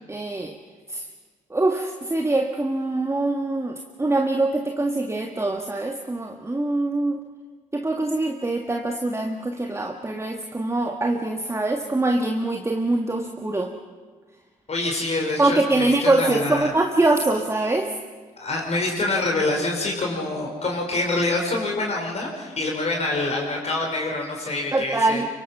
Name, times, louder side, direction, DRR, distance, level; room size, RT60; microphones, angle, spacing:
voice 1, 0.1-0.5 0.9-1.0 1.5-7.3 7.7-13.7 15.4-17.9 24.7-25.3, right 2 dB, 15° right, 4 dB, 1.7 m, -23 dB
voice 2, 14.7-16.7 18.4-25.2, left 2 dB, 35° left, 0 dB, 5.1 m, -26 dB
24.5 x 24.5 x 5.7 m, 1.5 s
figure-of-eight pair, 45°, 18 cm